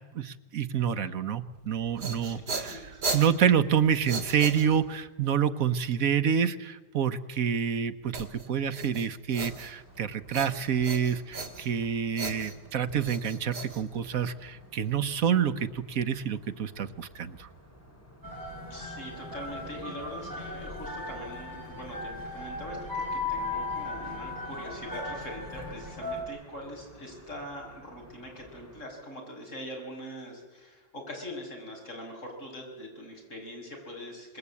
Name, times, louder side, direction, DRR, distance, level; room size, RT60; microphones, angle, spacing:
voice 1, 0.1-17.5, right 8 dB, 60° right, 11 dB, 1.3 m, -28 dB
sound 1, 1.7-5.1 8.1-10.0 10.3-11.8 12.1-14.4, right 4 dB, 75° right, 2.7 m, -37 dB
voice 2, 2.3-3.0 18.7-34.4, left 1 dB, 45° left, 0 dB, 6.7 m, -42 dB
sound 2, 9.3-28.8, equal, 10° left, 3.6 m, -55 dB
sound 3, 18.2-26.2, left 2 dB, 10° right, 4.9 m, -37 dB
26.5 x 21.0 x 8.4 m, 1.2 s
omnidirectional pair, 1.8 m